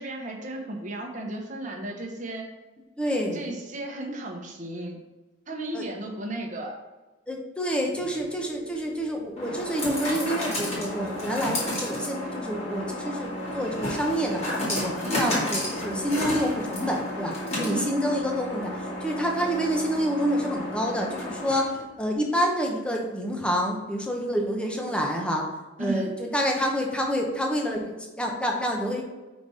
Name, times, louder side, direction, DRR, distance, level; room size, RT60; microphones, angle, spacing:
voice 1, 0.0-2.5 3.3-5.0 5.5-6.8 15.0-15.4 17.5-17.9 25.8-26.1, right 1 dB, 40° right, 1 dB, 1.0 m, -34 dB
voice 2, 3.0-3.4 5.7-5.8 7.3-25.4 25.8-29.0, equal, 5° left, 0 dB, 0.8 m, -28 dB
sound 1, 7.9-21.9, left 1 dB, 30° left, 1.9 m, -32 dB
5.1 x 4.1 x 4.8 m, 1.2 s
head